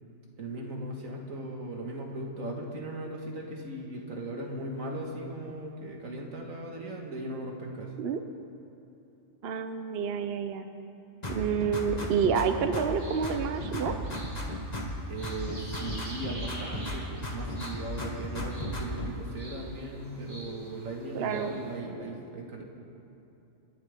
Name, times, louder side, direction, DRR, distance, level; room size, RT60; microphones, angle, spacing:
voice 1, 0.4-7.9 15.1-22.6, right 2 dB, 80° right, 0 dB, 2.2 m, -38 dB
voice 2, 9.4-10.7 11.3-13.9 21.1-21.5, right 6 dB, 55° right, 8 dB, 0.9 m, -29 dB
sound 1, 11.2-13.0 13.2-15.0 15.2-17.0 17.2-19.1, left 1 dB, 30° left, 1.7 m, -35 dB
sound 2, 12.7-21.8, right 1 dB, 30° right, 3.4 m, -48 dB
28.0 x 11.5 x 3.6 m, 2.9 s
omnidirectional pair, 1.4 m